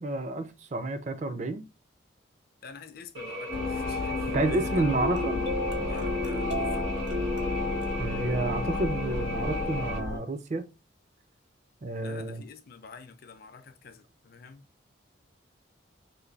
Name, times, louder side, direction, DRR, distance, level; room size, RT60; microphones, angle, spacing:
voice 1, 0.0-1.6 4.3-5.4 8.0-10.7 11.8-12.4, right 2 dB, 35° right, 0.4 m, -30 dB
voice 2, 2.6-4.8 5.9-6.9 12.0-14.7, left 5 dB, 50° left, 0.5 m, -48 dB
sound 1, 3.1-10.0, right 1 dB, 80° right, 1.4 m, -37 dB
sound 2, 3.5-10.2, left 3 dB, 85° left, 0.7 m, -32 dB
sound 3, 5.0-9.4, left 1 dB, 65° right, 0.7 m, -35 dB
3.2 x 2.6 x 3.9 m
head